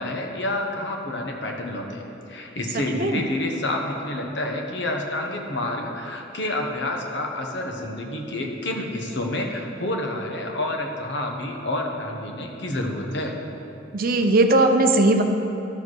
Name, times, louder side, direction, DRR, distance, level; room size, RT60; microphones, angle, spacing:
voice 1, 0.0-2.0 2.3-13.3, left 1 dB, 60° left, 2 dB, 1.1 m, -28 dB
voice 2, 13.9-15.2, right 2 dB, 45° right, 5 dB, 0.6 m, -18 dB
12.5 x 4.9 x 6.3 m, 2.8 s
head